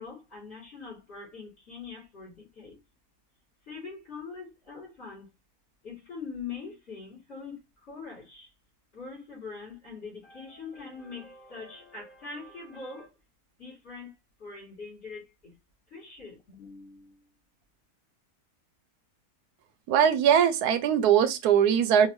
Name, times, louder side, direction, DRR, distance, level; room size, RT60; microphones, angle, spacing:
voice 1, 0.0-2.8 3.7-5.3 5.8-8.5 8.9-13.1 13.6-14.1 14.4-15.5 15.9-17.3, left 4 dB, 45° left, 3.7 m, -43 dB
voice 2, 19.9-22.1, right 8 dB, 85° right, 1.1 m, -21 dB
5.6 x 2.6 x 3.1 m
omnidirectional pair, 1.6 m